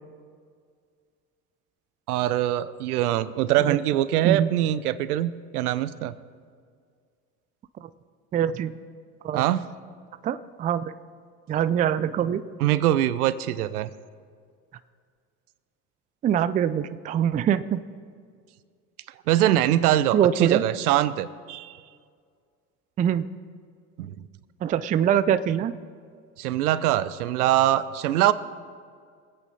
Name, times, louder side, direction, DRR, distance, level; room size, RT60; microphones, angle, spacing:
voice 1, 2.1-6.1 9.3-9.6 12.6-13.9 19.3-21.8 24.0-24.1 26.4-28.3, right 13 dB, 75° right, 16 dB, 0.7 m, -23 dB
voice 2, 8.3-8.7 9.2-9.5 10.2-10.9 11.5-12.4 16.2-17.8 20.1-20.6 23.0-23.3 24.6-25.7, right 9 dB, 20° right, 14 dB, 0.4 m, -23 dB
23.5 x 8.8 x 4.2 m, 2.1 s
hypercardioid pair, 80°, 45 cm